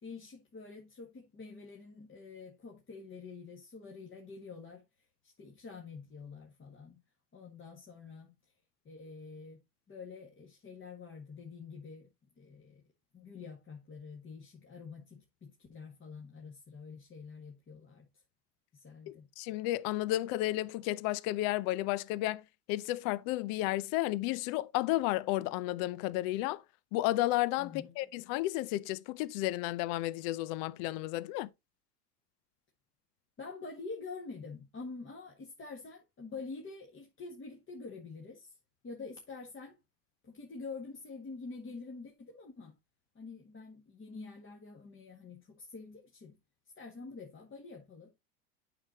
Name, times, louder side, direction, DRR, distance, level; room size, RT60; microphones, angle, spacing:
voice 1, 0.0-7.0 7.3-8.5 8.8-9.6 9.9-12.1 12.4-12.8 13.1-18.2 18.7-19.3 27.6-28.1 33.4-38.6 38.8-39.8 40.2-42.8 43.1-46.4 46.8-48.1, left 4 dB, 25° left, 1.8 m, -47 dB
voice 2, 19.1-22.4 22.7-26.6 26.9-27.7 28.0-31.5, left 16 dB, 50° left, 0.6 m, -32 dB
8.6 x 5.9 x 2.8 m
hypercardioid pair, 95°, 48 cm